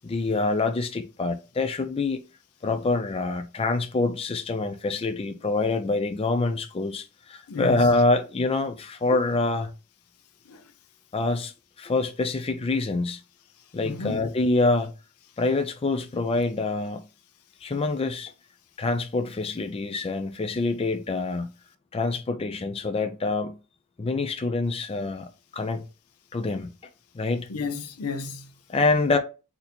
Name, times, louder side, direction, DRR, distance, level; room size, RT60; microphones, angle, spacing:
voice 1, 0.0-2.2 2.6-7.0 7.3-9.7 11.1-11.5 11.8-13.2 13.7-14.9 15.4-17.0 17.6-18.3 18.8-21.5 21.9-23.6 24.0-25.3 25.5-25.8 26.3-26.7 27.1-27.5 28.7-29.2, left 3 dB, 25° left, 0.4 m, -26 dB
voice 2, 7.5-8.0 10.4-10.7 13.8-14.2 27.5-28.6, left 4 dB, 85° left, 0.6 m, -33 dB
4.1 x 2.8 x 4.2 m
head